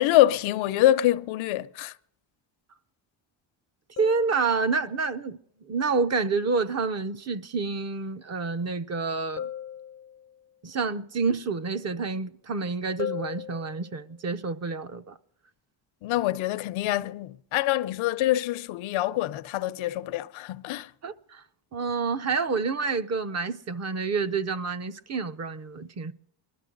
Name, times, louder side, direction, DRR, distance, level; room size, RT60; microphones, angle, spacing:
voice 1, 0.0-1.9 16.0-20.9, left 14 dB, 85° left, 0.7 m, -25 dB
sound 1, 4.0-5.1 9.4-10.6 13.0-14.2 17.5-17.7, left 9 dB, 30° left, 0.5 m, -38 dB
voice 2, 4.0-5.4 5.6-9.5 10.6-15.2 21.0-21.4 21.7-26.1, right 4 dB, 35° right, 0.7 m, -28 dB
22.0 x 12.0 x 3.9 m
cardioid pair, 120°, 46 cm